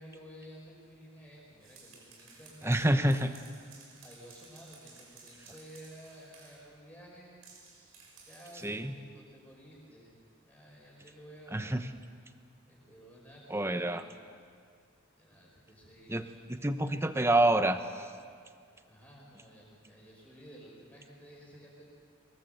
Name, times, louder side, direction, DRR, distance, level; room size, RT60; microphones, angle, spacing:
voice 1, 0.0-7.4 8.3-10.2 10.4-12.0 12.7-14.1 15.2-16.6 18.8-21.9, equal, 5° left, -4 dB, 6.3 m, -53 dB
sound 1, 1.4-6.7 7.4-8.8, right 4 dB, 75° right, 5.6 m, -56 dB
voice 2, 2.6-3.3 8.6-8.9 11.5-11.9 13.5-14.0 16.1-18.1, right 1 dB, 10° right, 9 dB, 0.8 m, -28 dB
23.0 x 21.0 x 8.1 m, 2.1 s
head